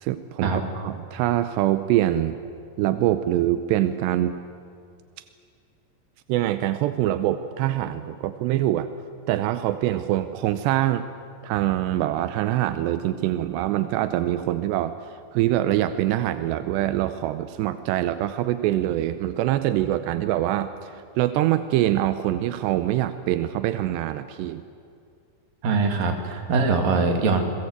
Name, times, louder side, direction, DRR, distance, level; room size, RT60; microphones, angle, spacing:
voice 1, 0.0-2.4 2.8-4.3 6.3-8.9 9.3-11.0 11.4-14.9 15.3-20.9 21.2-24.6, right 13 dB, 85° right, 10 dB, 2.9 m, -24 dB
voice 2, 25.6-27.4, right 4 dB, 60° right, 3 dB, 4.0 m, -22 dB
29.0 x 21.5 x 8.1 m, 2.3 s
omnidirectional pair, 4.8 m